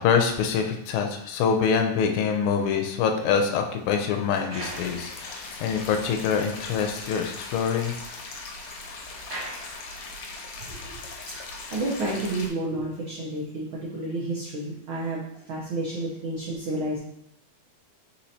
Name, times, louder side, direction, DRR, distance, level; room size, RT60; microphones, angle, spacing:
voice 1, 0.0-8.0, left 6 dB, 85° left, 4 dB, 2.0 m, -25 dB
sound 1, 2.4-6.1 6.4-6.5 6.8-6.9 7.2-10.5 11.2-11.4, right 1 dB, 50° right, 1.0 m, -45 dB
sound 2, 4.6-12.5, left 3 dB, 70° left, 1.6 m, -39 dB
voice 2, 10.6-11.0 11.7-17.0, right 2 dB, 85° right, -4 dB, 1.1 m, -30 dB
4.4 x 4.2 x 2.7 m, 0.76 s
omnidirectional pair, 3.4 m